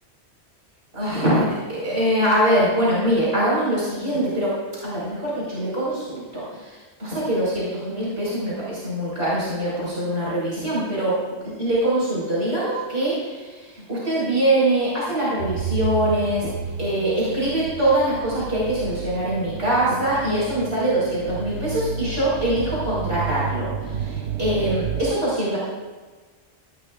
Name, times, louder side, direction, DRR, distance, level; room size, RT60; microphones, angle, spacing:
voice 1, 0.9-16.5 16.8-25.6, right 1 dB, 65° right, -7 dB, 5.0 m, -23 dB
sound 1, 15.4-25.0, right 7 dB, 85° right, 0.9 m, -31 dB
18.5 x 14.5 x 2.4 m, 1.4 s
omnidirectional pair, 1.1 m